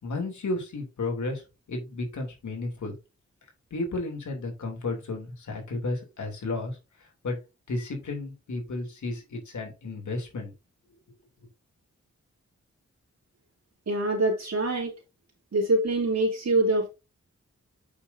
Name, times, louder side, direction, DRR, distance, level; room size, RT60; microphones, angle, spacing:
voice 1, 0.0-1.4 1.7-3.0 3.7-7.4 7.7-10.5, left 2 dB, 85° left, 3.0 m, -33 dB
voice 2, 13.9-14.9 15.5-16.9, right 2 dB, 65° right, 3.0 m, -24 dB
8.3 x 6.1 x 2.7 m
cardioid pair, 65°, 29 cm